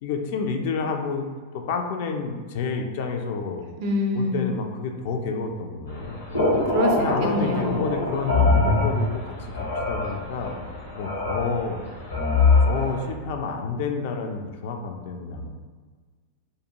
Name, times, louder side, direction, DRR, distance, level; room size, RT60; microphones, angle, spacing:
voice 1, 0.0-1.3 1.5-3.6 4.2-6.5 7.0-10.5 11.0-11.8 12.6-15.5, left 5 dB, 50° left, 4 dB, 0.3 m, -29 dB
voice 2, 3.8-4.5 6.7-7.8, left 1 dB, 45° right, 2 dB, 0.4 m, -26 dB
sound 1, 5.9-13.1, left 3 dB, 75° left, 0.8 m, -23 dB
2.5 x 2.2 x 2.9 m, 1.4 s
figure-of-eight pair, 90°, 0 cm